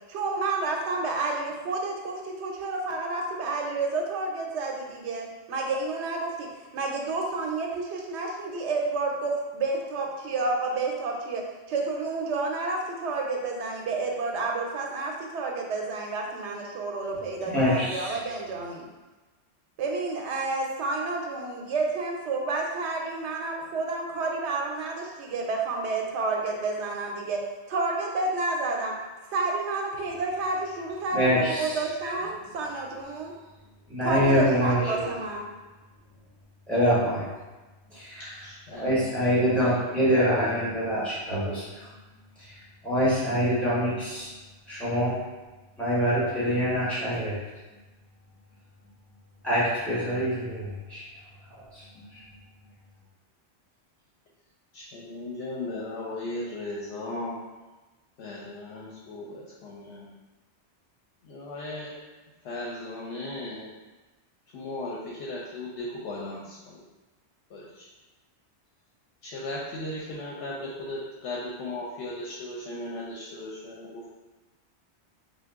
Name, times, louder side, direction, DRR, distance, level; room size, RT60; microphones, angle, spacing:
voice 1, 0.1-18.9 19.8-29.0 29.3-33.3 34.0-35.4, right 3 dB, 80° right, 1 dB, 0.9 m, -30 dB
voice 2, 17.5-18.2 31.1-31.8 33.9-35.1 36.7-37.2 37.9-38.3 38.7-41.9 42.4-42.5 42.8-44.3 44.7-45.2 45.8-47.4 49.4-51.0 51.6-51.8 52.1-52.2, equal, ahead, -11 dB, 1.1 m, -25 dB
voice 3, 38.4-40.6 54.7-57.4 58.2-60.1 61.2-61.9 62.4-63.7 64.5-66.8 67.5-67.9 69.2-74.1, left 2 dB, 80° left, -5 dB, 0.9 m, -37 dB
2.8 x 2.2 x 3.4 m, 1.2 s
omnidirectional pair, 1.1 m